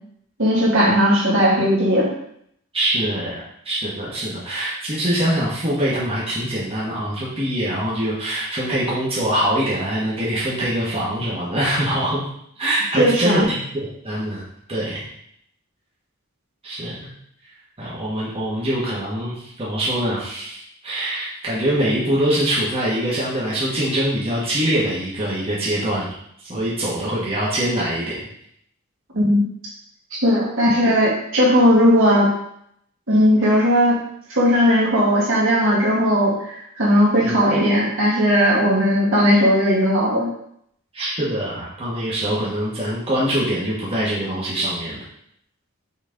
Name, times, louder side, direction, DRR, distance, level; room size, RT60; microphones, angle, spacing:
voice 1, 0.4-2.1 13.0-13.5 29.1-29.4 30.2-32.3 33.1-34.0 34.3-40.3, equal, 65° right, -5 dB, 2.2 m, -17 dB
voice 2, 2.7-12.2 12.6-13.6 14.0-14.4 14.7-15.0 16.6-17.1 17.8-26.1 26.4-28.3 37.2-37.3 40.9-45.0, right 1 dB, 25° right, -7 dB, 1.5 m, -23 dB
6.2 x 4.1 x 3.8 m, 0.71 s
head